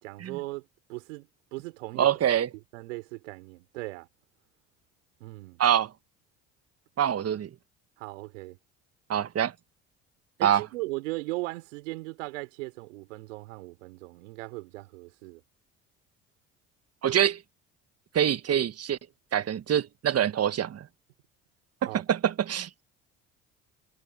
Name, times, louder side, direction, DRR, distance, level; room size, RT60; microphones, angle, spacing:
voice 1, 0.0-0.6 0.9-2.1 2.7-4.1 5.2-5.6 8.0-8.6 10.4-15.4 21.9-22.0, right 23 dB, 80° right, 4.7 m, -38 dB
voice 2, 2.0-2.5 5.6-5.9 7.0-7.5 9.1-9.5 10.4-10.6 17.0-17.4 18.1-19.0 19.3-20.9 21.8-22.7, right 9 dB, 40° right, 1.5 m, -25 dB
hypercardioid pair, 60°, 37 cm